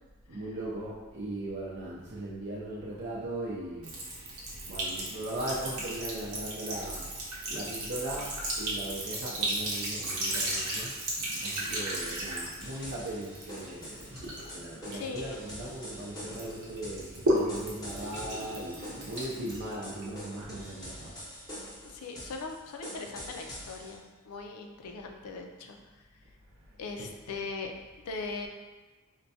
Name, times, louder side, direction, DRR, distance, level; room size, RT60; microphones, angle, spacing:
voice 1, 0.3-4.1 4.7-7.0 7.5-10.9 11.4-14.3 14.5-21.2, right 1 dB, 55° right, -6 dB, 0.5 m, -38 dB
Sink (filling or washing) / Trickle dribble, 3.8-16.0 16.3-20.2, right 1 dB, 80° right, 0.9 m, -35 dB
sound 1, 12.6-23.9, equal, 15° left, 0.8 m, -45 dB
voice 2, 14.9-15.4 21.8-26.2 26.8-27.7 28.0-28.5, left 4 dB, 90° left, 3 dB, 0.4 m, -40 dB
4.4 x 2.2 x 2.6 m, 1.2 s
head